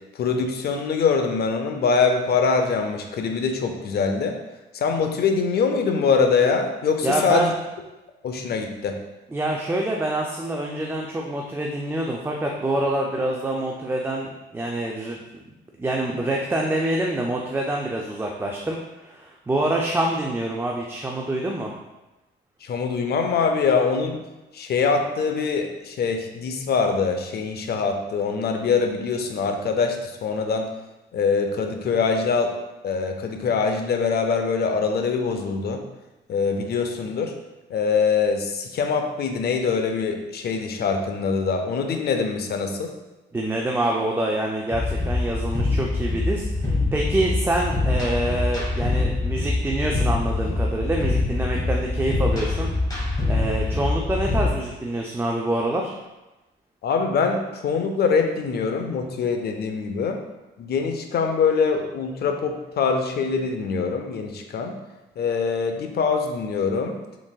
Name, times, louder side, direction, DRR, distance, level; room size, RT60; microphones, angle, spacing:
voice 1, 0.1-4.4 4.7-7.5 8.2-9.0 22.6-24.2 24.5-30.7 31.1-32.5 32.8-35.8 36.3-37.3 37.7-42.9 56.8-60.2 60.6-64.7 65.2-67.0, left 5 dB, 55° left, 5 dB, 0.5 m, -23 dB
voice 2, 7.0-7.5 9.3-15.2 15.8-21.7 43.3-52.7 53.3-55.9, right 1 dB, 10° right, -1 dB, 0.4 m, -26 dB
sound 1, 44.7-54.5, left 2 dB, 20° left, 1.5 m, -24 dB
3.9 x 3.6 x 2.3 m, 1.0 s
cardioid pair, 90°, 20 cm